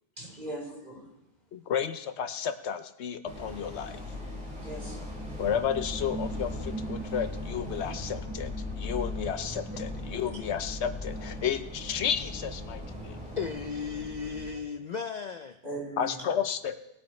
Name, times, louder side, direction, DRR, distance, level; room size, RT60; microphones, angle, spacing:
voice 1, 0.2-1.1 4.6-5.1 10.2-10.3 15.6-16.2, right 1 dB, 45° right, -4 dB, 4.0 m, -39 dB
voice 2, 1.5-4.0 5.4-8.5 8.8-13.2 16.0-16.9, left 8 dB, 75° left, 10 dB, 1.0 m, -32 dB
sound 1, 3.2-14.5, left 1 dB, 5° right, 4.2 m, -38 dB
voice 3, 13.4-15.6, left 6 dB, 50° left, 8 dB, 0.5 m, -35 dB
20.0 x 8.7 x 3.1 m, 0.87 s
omnidirectional pair, 1.1 m